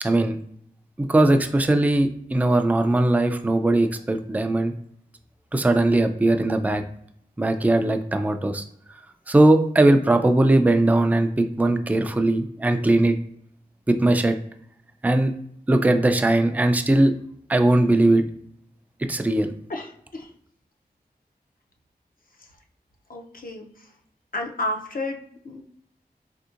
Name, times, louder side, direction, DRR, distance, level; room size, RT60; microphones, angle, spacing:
voice 1, 0.0-0.4 1.0-4.7 5.5-6.8 7.4-8.6 9.3-13.1 13.9-14.3 15.0-15.3 15.7-17.1 17.5-18.2 19.1-19.5, right 2 dB, 10° right, 7 dB, 0.3 m, -19 dB
voice 2, 19.7-20.3 23.1-23.7 24.3-25.6, left 2 dB, 55° left, 1 dB, 0.5 m, -31 dB
3.5 x 2.6 x 2.4 m, 0.68 s
wide cardioid pair, 65°, 17 cm